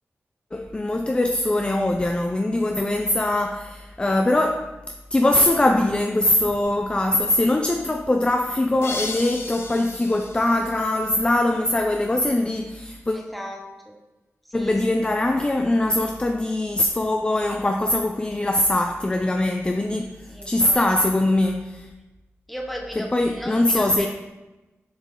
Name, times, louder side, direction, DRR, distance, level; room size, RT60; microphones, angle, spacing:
voice 1, 0.5-4.7 5.1-13.2 14.5-20.1 20.5-21.9 23.0-24.1, left 1 dB, 20° left, 4 dB, 0.4 m, -22 dB
sound 1, 8.8-11.5, left 3 dB, 60° left, 0.7 m, -35 dB
voice 2, 13.1-14.0 14.4-14.8 20.3-20.9 22.5-24.1, equal, ahead, 0 dB, 0.8 m, -36 dB
6.7 x 4.4 x 3.7 m, 1.1 s
wide cardioid pair, 90°, 5 cm